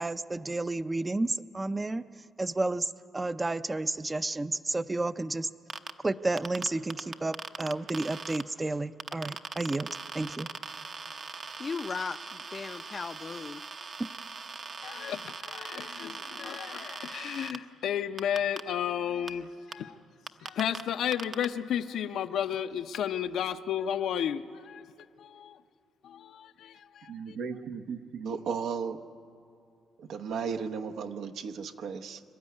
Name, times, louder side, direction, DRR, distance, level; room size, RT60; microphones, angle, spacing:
voice 1, 0.0-2.0 2.4-5.5 6.0-9.9 10.1-10.5 14.0-14.1, right 2 dB, 20° right, 0.5 m, -31 dB
sound 1, 5.7-5.9 6.4-8.4 9.0-17.6 18.2-18.6 19.3-19.4 19.7-19.8 20.3-20.8 21.1-21.5, right 5 dB, 45° right, 0.9 m, -40 dB
voice 2, 11.6-13.7, left 5 dB, 35° left, 0.5 m, -37 dB
voice 3, 14.8-20.0 20.4-24.9 25.2-25.6 26.0-27.4, left 9 dB, 75° left, 0.7 m, -33 dB
voice 4, 27.1-29.0 30.0-32.2, right 6 dB, 80° right, 1.0 m, -35 dB
26.5 x 12.5 x 9.6 m
cardioid pair, 90°, 0 cm